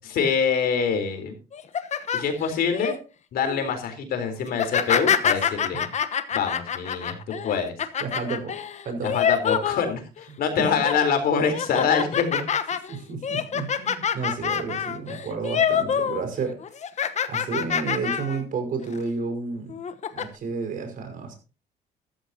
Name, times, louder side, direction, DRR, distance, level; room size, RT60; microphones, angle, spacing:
voice 1, 0.0-1.3 2.1-3.0 3.3-5.9 6.3-7.7 9.0-12.4, left 6 dB, 65° left, 7 dB, 4.0 m, -25 dB
sound 1, 1.5-2.9 3.4-3.7 4.5-10.2 10.6-11.1 11.5-16.2 16.5-18.4 18.8-19.0 19.7-20.2, left 8 dB, 40° left, 1.2 m, -26 dB
voice 2, 8.0-8.6 8.9-9.2 10.6-10.8 12.9-16.6 17.3-19.8 20.1-21.3, right 4 dB, 55° right, 5 dB, 5.4 m, -31 dB
14.0 x 14.0 x 2.9 m, 0.33 s
cardioid pair, 110°, 17 cm